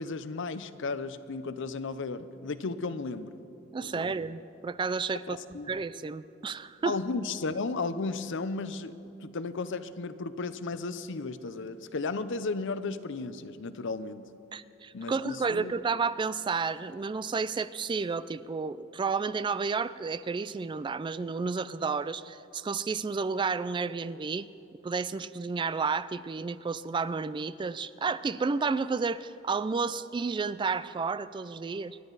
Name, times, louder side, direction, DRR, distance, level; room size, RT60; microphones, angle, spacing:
voice 1, 0.0-3.4 3.8-4.1 5.3-5.7 6.8-14.3 14.9-15.7, left 3 dB, 65° left, 13 dB, 0.6 m, -34 dB
voice 2, 3.7-5.4 5.7-7.0 14.5-24.5 24.8-32.0, right 4 dB, 25° right, 15 dB, 0.3 m, -31 dB
27.5 x 11.0 x 4.0 m, 2.8 s
head